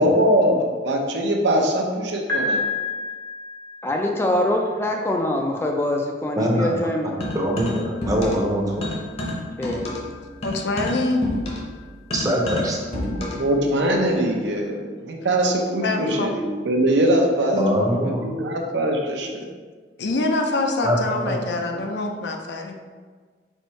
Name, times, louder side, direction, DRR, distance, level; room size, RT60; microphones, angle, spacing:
voice 1, 0.0-2.7 12.9-19.4, right 1 dB, 75° right, 1 dB, 0.7 m, -22 dB
Piano, 2.3-4.2, left 3 dB, 55° right, 1.2 m, -28 dB
voice 2, 3.8-7.1 9.6-9.9, left 1 dB, 15° left, 1 dB, 0.3 m, -24 dB
voice 3, 6.4-8.8 12.1-12.8 17.6-18.2 20.8-21.4, equal, 20° right, -1 dB, 0.7 m, -23 dB
sound 1, 7.2-8.5 8.8-13.5, left 1 dB, 35° left, 0.8 m, -29 dB
voice 4, 10.4-11.2 15.8-16.3 17.5-17.9 20.0-22.7, left 2 dB, 70° left, 3 dB, 0.5 m, -25 dB
4.4 x 2.7 x 4.4 m, 1.5 s
head